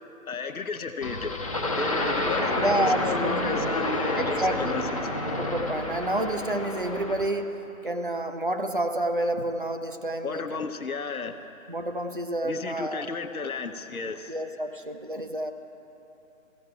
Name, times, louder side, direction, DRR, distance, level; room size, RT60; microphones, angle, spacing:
voice 1, 0.3-1.3 1.8-4.9 10.2-11.5 12.4-14.4, left 4 dB, 90° left, 7 dB, 0.8 m, -33 dB
sound 1, 1.0-7.3, left 1 dB, 25° left, 0.6 m, -29 dB
voice 2, 2.6-3.7 4.2-4.9 5.4-10.7 11.7-13.1 14.3-15.5, right 1 dB, 40° right, 6 dB, 0.4 m, -29 dB
16.0 x 5.7 x 4.7 m, 2.9 s
figure-of-eight pair, 155°, 41 cm